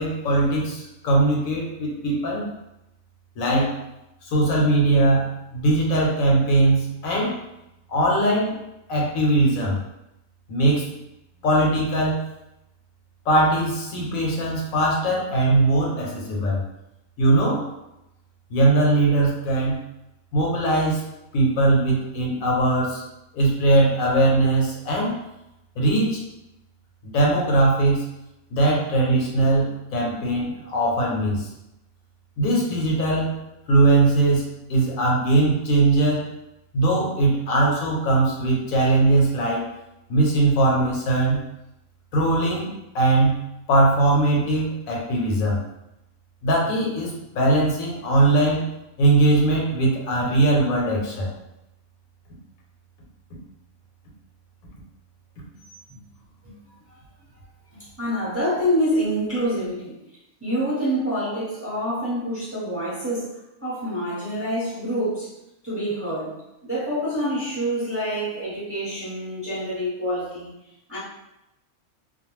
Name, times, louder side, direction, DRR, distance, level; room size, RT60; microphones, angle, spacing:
voice 1, 0.0-2.5 3.4-3.8 4.2-7.4 7.9-8.5 8.9-9.8 10.5-10.9 11.4-12.2 13.3-16.6 17.2-17.7 18.5-19.8 20.3-21.0 21.3-23.0 23.3-25.2 25.8-26.2 27.0-28.0 28.5-31.5 32.4-33.3 33.7-36.3 36.7-39.7 40.1-41.4 42.1-43.4 43.7-45.6 46.4-48.7 49.0-51.3, right 2 dB, 80° left, -2 dB, 1.1 m, -20 dB
voice 2, 57.7-60.0 60.4-65.3 65.6-70.5 70.9-71.0, equal, 10° right, -9 dB, 0.8 m, -27 dB
2.5 x 2.2 x 3.1 m, 0.89 s
omnidirectional pair, 1.4 m